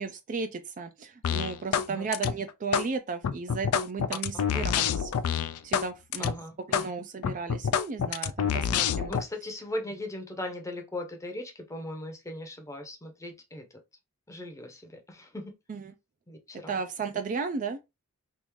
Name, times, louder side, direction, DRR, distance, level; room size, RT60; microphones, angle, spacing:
voice 1, 0.0-5.1 5.6-6.4 6.7-9.1 15.7-15.9 16.7-17.8, right 5 dB, 35° right, 0.4 m, -34 dB
sound 1, 1.2-1.9 2.1-2.9 3.2-5.9 6.1-6.3 6.7-6.9 7.2-9.2, left 8 dB, 75° left, 0.4 m, -27 dB
voice 2, 6.2-6.5 6.8-6.9 9.1-13.6 14.3-15.5 16.3-16.8, left 1 dB, 15° left, 0.7 m, -38 dB
3.5 x 2.6 x 3.0 m
head